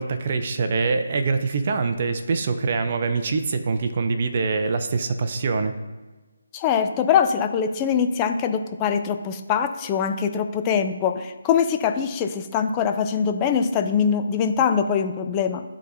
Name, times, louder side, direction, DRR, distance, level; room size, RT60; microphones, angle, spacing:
voice 1, 0.0-5.7, right 4 dB, 45° right, 8 dB, 0.6 m, -24 dB
voice 2, 6.5-15.6, left 7 dB, 20° left, 6 dB, 0.5 m, -23 dB
11.5 x 4.1 x 2.7 m, 1.2 s
figure-of-eight pair, 155°, 0 cm